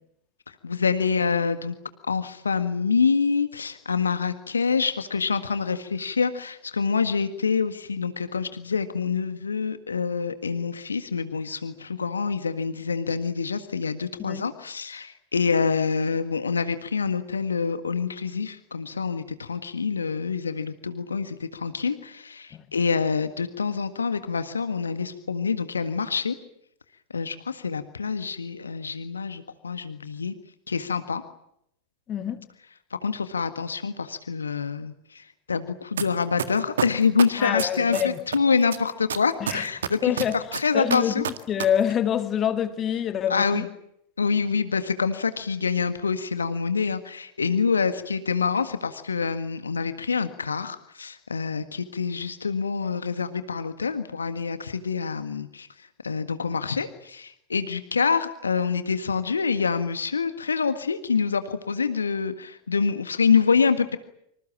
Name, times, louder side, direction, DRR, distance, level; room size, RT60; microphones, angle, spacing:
voice 1, 0.5-1.8 2.1-26.3 27.1-30.3 30.7-31.2 32.9-41.2 43.3-43.7 44.2-64.0, left 5 dB, 75° left, 1.7 m, -26 dB
voice 2, 32.1-32.4 37.4-38.2 39.4-39.7 40.0-40.4 40.7-43.7, left 9 dB, 30° left, 1.9 m, -26 dB
sound 1, 36.0-36.1 36.4-38.4 38.7-41.6 41.9-42.0, right 8 dB, 65° right, 1.8 m, -28 dB
26.5 x 25.5 x 7.5 m
figure-of-eight pair, 90°, 0 cm